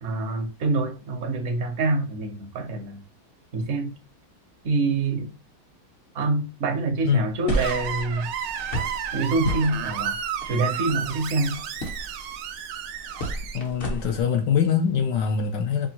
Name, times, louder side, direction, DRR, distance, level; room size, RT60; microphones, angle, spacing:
voice 1, 0.0-3.0 3.5-4.0 4.6-5.3 6.1-8.3 9.1-10.2 10.5-11.6, right 3 dB, 55° right, 0.8 m, -26 dB
sound 1, 7.5-14.2, right 1 dB, 50° left, 0.6 m, -33 dB
Screech, 7.5-13.6, right 8 dB, 85° right, 1.4 m, -32 dB
voice 2, 13.5-15.9, left 7 dB, 70° left, 1.1 m, -23 dB
5.3 x 2.2 x 2.8 m
omnidirectional pair, 2.3 m